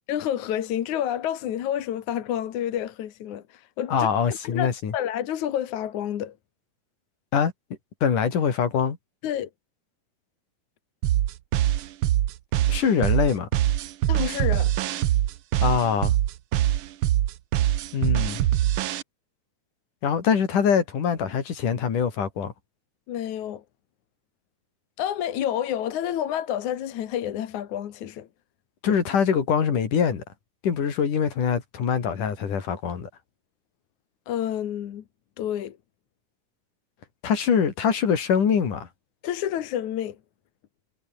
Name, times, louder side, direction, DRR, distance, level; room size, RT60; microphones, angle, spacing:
voice 1, 0.1-6.4 9.2-9.5 14.1-14.7 23.1-23.6 25.0-28.3 34.3-35.0 35.4-35.8 39.2-40.2, left 10 dB, 70° left, 2.9 m, -29 dB
voice 2, 3.9-4.9 7.3-7.5 8.0-9.0 12.7-13.5 15.6-16.1 17.9-18.4 20.0-22.5 28.8-30.2 30.6-33.1 37.2-38.9, left 7 dB, 90° left, 4.7 m, -23 dB
sound 1, 11.0-19.0, right 12 dB, 70° right, 1.3 m, -23 dB
omnidirectional pair, 3.5 m